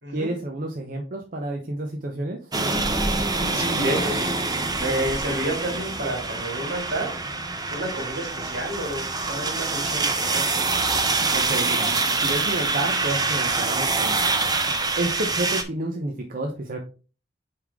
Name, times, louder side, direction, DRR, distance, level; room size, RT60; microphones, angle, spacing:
voice 1, 0.1-2.5 11.3-11.9 12.2-14.2 15.0-16.8, right 2 dB, 50° right, 2 dB, 0.8 m, -30 dB
sound 1, 2.5-15.6, right 3 dB, 20° right, 0.7 m, -25 dB
voice 2, 3.5-7.1 7.7-10.7, right 1 dB, 80° right, 0 dB, 2.8 m, -30 dB
5.5 x 4.8 x 3.6 m, 0.35 s
head